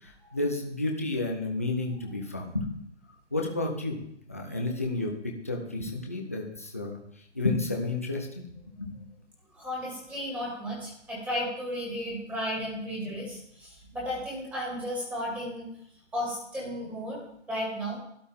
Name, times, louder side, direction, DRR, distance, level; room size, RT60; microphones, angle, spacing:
voice 1, 0.0-2.7 3.3-4.0 4.3-7.0 7.3-8.5 8.8-8.9, left 2 dB, 15° left, 0 dB, 0.5 m, -31 dB
voice 2, 9.5-15.7 16.1-17.2 17.5-18.0, equal, 5° right, -4 dB, 2.2 m, -34 dB
12.5 x 11.5 x 3.6 m, 0.72 s
hypercardioid pair, 165°, 36 cm